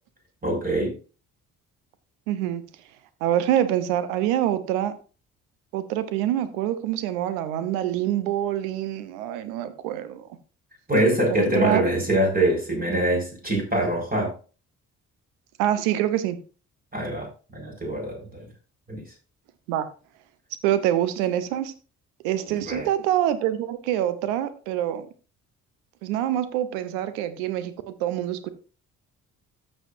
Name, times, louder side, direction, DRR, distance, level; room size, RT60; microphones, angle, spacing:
voice 1, 0.4-0.9 10.9-14.3 16.9-17.3 17.5-18.5 18.9-19.0 22.6-22.9, right 1 dB, 20° right, 5.4 m, -24 dB
voice 2, 2.3-2.6 3.2-4.9 5.7-10.3 11.3-11.8 15.6-16.4 19.7-19.9 20.6-21.7 22.2-25.1 26.0-28.5, right 12 dB, 70° right, 1.0 m, -25 dB
14.0 x 6.7 x 2.6 m
figure-of-eight pair, 40°, 44 cm